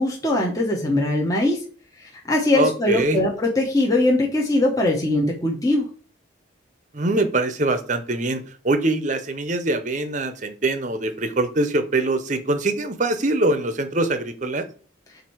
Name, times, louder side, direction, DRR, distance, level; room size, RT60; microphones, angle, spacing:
voice 1, 0.0-1.6 2.0-5.9, left 1 dB, 15° left, -1 dB, 1.0 m, -21 dB
voice 2, 2.5-3.2 6.9-14.7, right 2 dB, 40° right, 9 dB, 0.7 m, -23 dB
7.6 x 2.7 x 4.6 m, 0.41 s
head